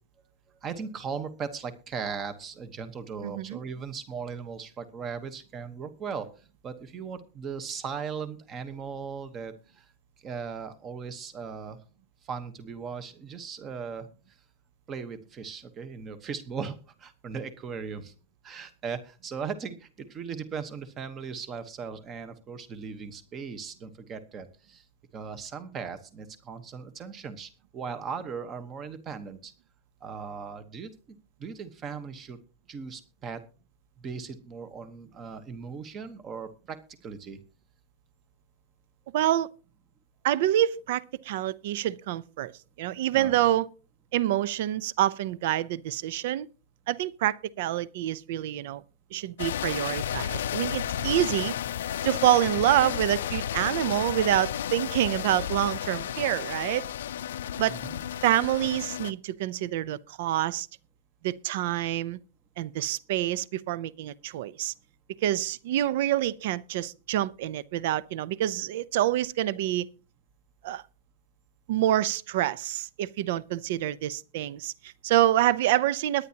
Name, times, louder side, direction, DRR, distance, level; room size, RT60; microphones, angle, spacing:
voice 1, 0.6-6.3 6.6-9.9 10.2-11.8 12.2-14.1 14.9-18.1 18.4-24.8 25.1-29.5 30.0-30.9 31.4-32.4 32.7-33.4 34.0-37.4 43.1-43.3 57.7-58.0, right 6 dB, 20° right, 1.1 m, -38 dB
voice 2, 3.2-3.6 39.1-39.5 40.2-42.5 42.8-43.7 44.1-46.5 46.9-48.8 49.1-51.5 52.0-56.8 57.6-57.8 58.2-60.7 61.2-62.2 62.6-64.7 65.2-69.9 70.6-70.8 71.7-76.3, right 13 dB, 50° right, 0.6 m, -27 dB
sound 1, 49.4-59.1, left 10 dB, 85° left, 0.5 m, -32 dB
21.5 x 9.6 x 2.9 m
supercardioid pair, 175°, 0 cm